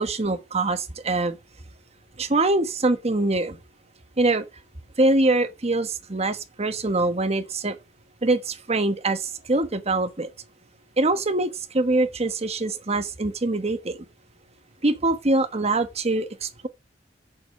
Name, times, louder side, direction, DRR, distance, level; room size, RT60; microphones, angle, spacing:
voice 1, 0.0-1.4 2.2-3.6 4.2-4.4 5.0-7.8 8.2-10.3 11.0-14.0 14.8-16.7, right 2 dB, 35° right, 1.1 m, -24 dB
7.0 x 5.0 x 7.0 m
head